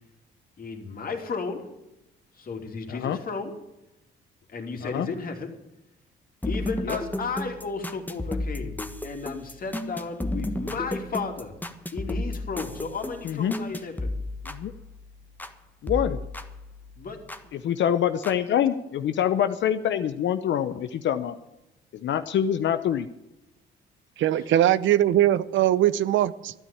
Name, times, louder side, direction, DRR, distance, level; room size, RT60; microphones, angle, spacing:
voice 1, 0.6-1.6 2.3-3.5 4.5-5.5 6.4-11.5 11.9-14.1 17.0-17.2 17.4-17.5 24.4-24.5, left 4 dB, 45° left, 4 dB, 3.0 m, -34 dB
sound 1, 6.4-15.6 15.9-17.5 18.2-18.3, left 1 dB, 10° left, 1.3 m, -33 dB
voice 2, 15.8-16.2 17.5-21.4 22.0-23.1, left 9 dB, 65° left, 9 dB, 0.8 m, -25 dB
voice 3, 24.2-26.5, right 12 dB, 75° right, 16 dB, 0.7 m, -21 dB
13.0 x 9.9 x 8.6 m, 0.89 s
cardioid pair, 90°, 20 cm